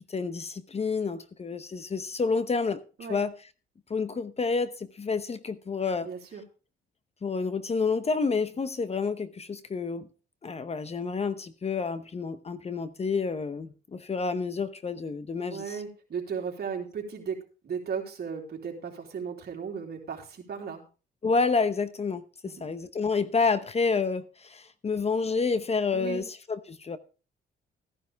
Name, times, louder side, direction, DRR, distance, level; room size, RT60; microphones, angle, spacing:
voice 1, 0.1-2.8 3.1-3.3 3.9-6.1 7.2-10.1 10.4-15.8 21.2-27.0, left 4 dB, 30° left, 0.9 m, -29 dB
voice 2, 6.0-6.4 15.4-17.4 17.6-20.8 22.4-22.6 25.9-26.2, right 6 dB, 55° right, 3.4 m, -36 dB
14.5 x 10.5 x 3.5 m
cardioid pair, 90°, 20 cm